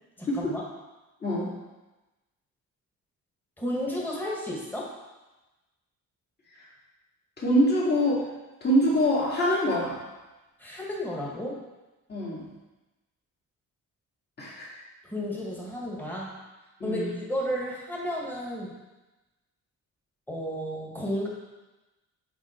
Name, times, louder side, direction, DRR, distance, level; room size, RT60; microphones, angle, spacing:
voice 1, 0.2-0.6 3.6-4.9 10.6-11.6 15.0-16.4 16.8-18.8 20.3-21.3, equal, 5° left, -3 dB, 1.6 m, -32 dB
voice 2, 7.4-8.3 8.6-10.0 12.1-12.5 14.4-14.8 16.8-17.1, equal, 30° left, -6 dB, 2.2 m, -24 dB
6.0 x 5.1 x 4.4 m, 1.1 s
cardioid pair, 105°, 33 cm